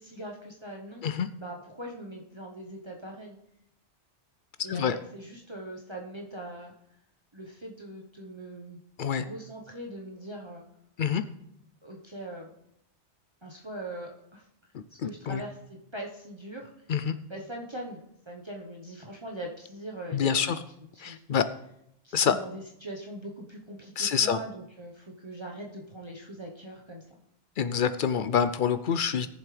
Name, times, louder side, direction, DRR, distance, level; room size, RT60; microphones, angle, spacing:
voice 1, 0.0-1.1 1.3-3.4 4.6-6.7 7.3-8.8 9.2-10.6 11.8-12.5 13.4-14.4 15.0-16.7 17.3-20.6 20.9-21.2 22.0-27.0, right 1 dB, 25° right, -1 dB, 1.1 m, -41 dB
voice 2, 15.0-15.4 16.9-17.2 20.1-20.6 21.0-21.4 22.1-22.3 24.0-24.4 27.6-29.4, left 7 dB, 60° left, 12 dB, 0.6 m, -26 dB
18.0 x 7.2 x 3.3 m, 0.78 s
omnidirectional pair, 1.2 m